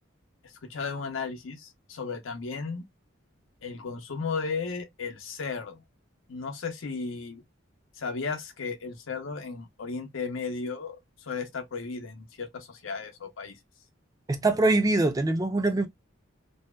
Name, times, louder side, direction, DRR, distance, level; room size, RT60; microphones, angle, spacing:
voice 1, 0.6-2.8 3.6-5.8 6.3-7.4 8.0-11.0 11.2-13.5, left 4 dB, 85° left, 0.6 m, -35 dB
voice 2, 14.3-15.9, right 2 dB, 20° right, 0.3 m, -23 dB
2.7 x 2.1 x 2.2 m
head